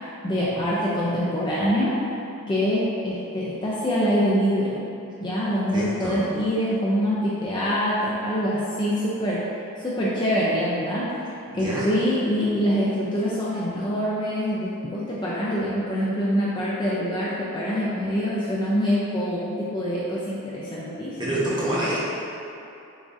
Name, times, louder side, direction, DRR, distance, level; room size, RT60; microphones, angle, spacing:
voice 1, 0.2-1.9 2.5-4.8 5.2-9.4 9.8-11.1 11.5-21.6, equal, 20° left, -7 dB, 0.4 m, -25 dB
voice 2, 5.7-6.2 11.5-11.9 21.2-22.0, right 1 dB, 20° right, -8 dB, 0.8 m, -27 dB
6.9 x 2.5 x 2.6 m, 2.8 s
head